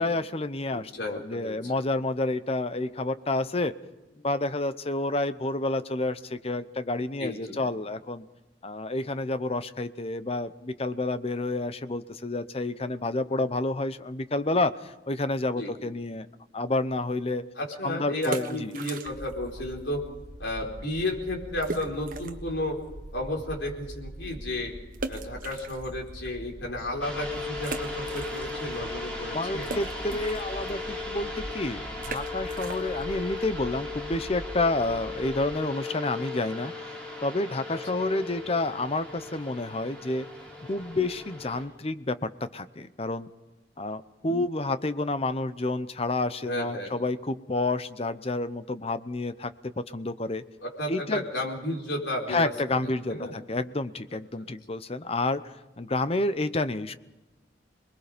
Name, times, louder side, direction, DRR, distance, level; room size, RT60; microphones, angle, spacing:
voice 1, 0.0-3.8 4.2-8.2 8.6-16.3 16.5-17.5 17.8-18.7 29.3-36.7 37.2-40.3 40.7-43.3 43.8-50.4 50.9-51.2 52.3-56.9, left 2 dB, 35° left, 13 dB, 0.8 m, -29 dB
voice 2, 0.7-1.7 7.2-7.6 15.6-15.7 17.6-20.0 20.4-22.8 23.1-24.7 25.0-29.7 37.7-37.8 46.4-46.9 50.6-52.5 52.8-53.4 54.4-54.5, left 1 dB, 85° left, 0 dB, 4.6 m, -33 dB
sound 1, 18.2-19.5 19.7-19.8 20.4-20.5 20.8-20.9 21.6-22.5 23.0-23.1 24.9-26.3 26.8-26.9 27.6-28.8 29.0-34.6, right 3 dB, 50° right, 1.4 m, -40 dB
sound 2, 19.0-35.6, equal, 75° right, 1.9 m, -43 dB
sound 3, 27.0-41.6, left 3 dB, 5° left, 5.8 m, -37 dB
27.5 x 21.0 x 5.2 m, 1.1 s
head